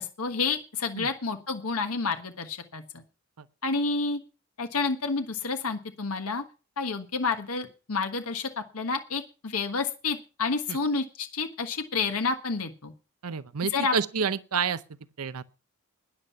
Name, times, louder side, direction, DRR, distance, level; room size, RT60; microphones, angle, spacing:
voice 1, 0.0-3.0 3.6-4.2 4.6-6.4 6.8-12.9 13.7-13.9, left 4 dB, 85° left, 1.3 m, -29 dB
voice 2, 13.2-14.8 15.2-15.4, right 6 dB, 90° right, 0.7 m, -29 dB
13.0 x 10.5 x 5.7 m
head